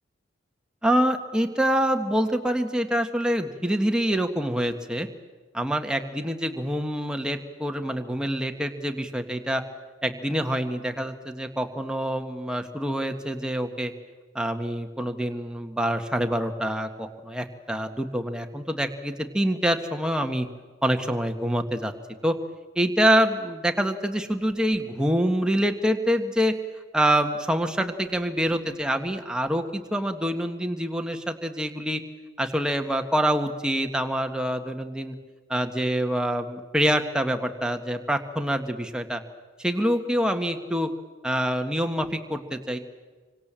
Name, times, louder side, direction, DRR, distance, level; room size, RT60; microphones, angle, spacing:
voice 1, 0.8-5.1 5.5-9.6 10.0-13.9 14.3-20.5 20.8-21.9 22.2-22.3 22.7-26.5 26.9-32.0 32.4-35.1 35.5-39.2 39.6-40.9 41.2-42.8, equal, 5° right, 5 dB, 1.7 m, -26 dB
27.5 x 25.0 x 7.6 m, 1.4 s
head